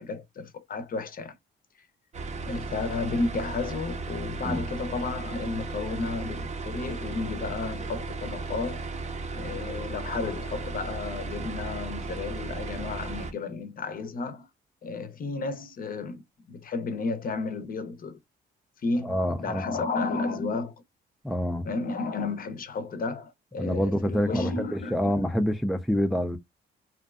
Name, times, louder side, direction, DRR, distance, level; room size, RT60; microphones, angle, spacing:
voice 1, 0.0-1.3 2.5-8.9 9.3-14.5 14.8-16.2 16.5-18.2 18.8-20.8 21.6-25.1, left 3 dB, 45° left, 0.6 m, -32 dB
sound 1, 2.1-13.3, right 3 dB, 35° right, 0.6 m, -35 dB
voice 2, 19.0-19.8 21.2-21.7 23.6-26.4, equal, ahead, 0.3 m, -27 dB
2.6 x 2.1 x 2.4 m
cardioid pair, 90°, 20 cm